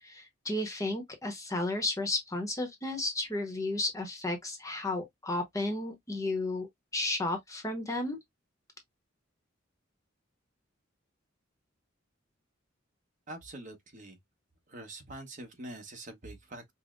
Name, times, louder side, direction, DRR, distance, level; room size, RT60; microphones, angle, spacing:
voice 1, 0.0-8.2, left 2 dB, 15° left, 0.8 m, -33 dB
voice 2, 13.3-14.2 14.7-16.7, right 1 dB, 40° right, 1.1 m, -45 dB
5.3 x 2.0 x 2.5 m
head